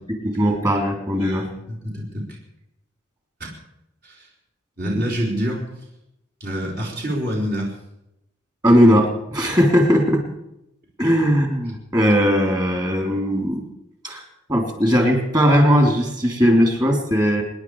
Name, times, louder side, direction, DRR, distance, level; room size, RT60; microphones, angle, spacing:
voice 1, 0.2-1.5 8.6-10.2 11.0-13.6 14.0-14.2 14.5-17.4, equal, 20° right, 2 dB, 3.5 m, -18 dB
voice 2, 1.2-2.2 3.4-3.5 4.0-4.3 4.8-5.6 6.4-7.7, equal, 50° right, -3 dB, 4.2 m, -26 dB
27.0 x 10.5 x 4.9 m, 0.84 s
head